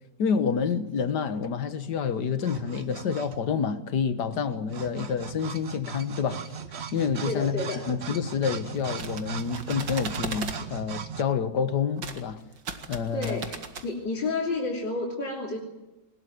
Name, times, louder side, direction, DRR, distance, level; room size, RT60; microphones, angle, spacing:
voice 1, 0.2-6.5 6.9-7.6 7.9-12.4 12.9-13.4, left 6 dB, 70° left, 1.9 m, -28 dB
sound 1, 1.8-3.6 4.3-11.2, right 7 dB, 45° right, 1.1 m, -38 dB
voice 2, 7.2-7.9 13.1-15.6, left 2 dB, 90° left, 3.9 m, -31 dB
sound 2, 8.7-10.6 12.0-12.2 12.5-13.9, right 5 dB, 75° right, 2.5 m, -37 dB
21.0 x 20.5 x 9.4 m
omnidirectional pair, 1.9 m